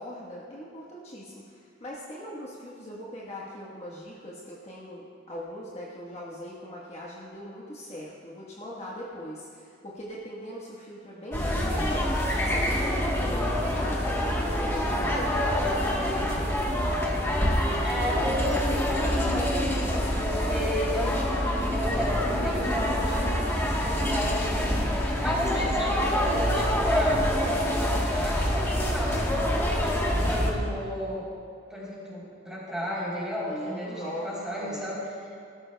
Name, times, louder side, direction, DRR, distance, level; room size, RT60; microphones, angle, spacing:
voice 1, 0.0-16.5 19.8-20.3 33.5-34.9, equal, 30° left, -5 dB, 1.3 m, -40 dB
sound 1, 11.3-30.5, equal, 10° left, 1.2 m, -26 dB
voice 2, 17.8-19.7 20.2-21.2 21.7-29.4 29.8-31.3 31.7-35.0, equal, 5° right, -7 dB, 3.4 m, -33 dB
18.0 x 13.0 x 2.3 m, 2.3 s
head